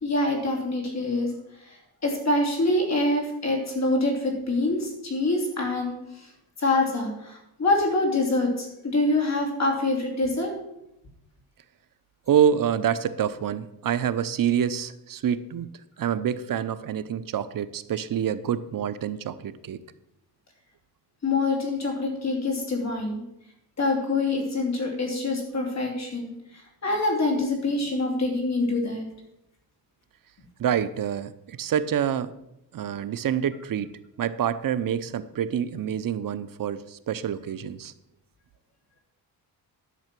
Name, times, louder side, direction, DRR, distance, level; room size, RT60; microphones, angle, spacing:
voice 1, 0.0-1.3 1.6-6.3 6.6-10.5 21.2-23.2 23.8-29.1, left 2 dB, 40° left, 1 dB, 2.9 m, -25 dB
voice 2, 12.3-15.7 16.0-19.8 30.6-32.3 32.7-37.9, right 9 dB, 55° right, 12 dB, 0.7 m, -27 dB
11.0 x 6.6 x 6.0 m, 0.84 s
cardioid pair, 120°, 40 cm